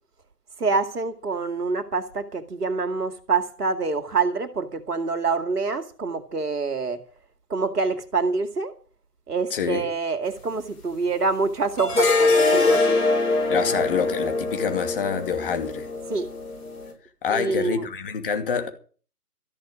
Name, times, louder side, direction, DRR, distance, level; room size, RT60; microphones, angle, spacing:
voice 1, 0.6-7.0 7.5-8.7 9.3-13.0 16.1-16.3 17.3-17.9, right 4 dB, 75° right, 2.3 m, -26 dB
voice 2, 9.5-9.9 13.3-15.9 17.2-18.7, left 6 dB, 35° left, 2.5 m, -27 dB
sound 1, 11.8-16.9, left 3 dB, 70° left, 6.3 m, -23 dB
14.5 x 6.2 x 9.7 m
figure-of-eight pair, 155°, 48 cm